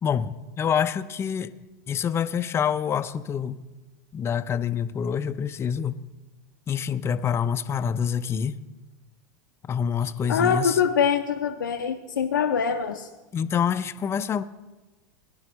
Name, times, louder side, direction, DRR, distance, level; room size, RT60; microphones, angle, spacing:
voice 1, 0.0-1.5 1.9-3.6 4.1-6.0 6.7-8.6 9.7-10.8 13.3-14.5, left 7 dB, 25° left, 12 dB, 0.5 m, -26 dB
voice 2, 10.3-13.1, left 7 dB, 90° left, 4 dB, 0.6 m, -24 dB
18.0 x 10.5 x 3.1 m, 1.1 s
hypercardioid pair, 95°, 10 cm